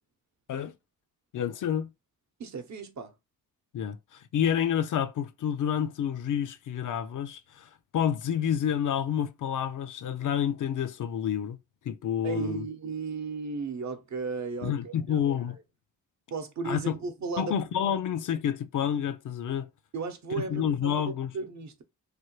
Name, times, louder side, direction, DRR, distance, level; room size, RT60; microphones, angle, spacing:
voice 1, 1.3-1.9 3.7-11.6 11.9-12.6 14.6-15.6 16.6-17.0 17.4-19.7 20.3-21.3, left 9 dB, 60° left, 0.5 m, -29 dB
voice 2, 2.4-3.1 12.2-15.2 16.3-17.5 17.9-18.0 19.9-21.8, right 4 dB, 55° right, 0.8 m, -35 dB
3.2 x 2.1 x 3.1 m
cardioid pair, 60°, 34 cm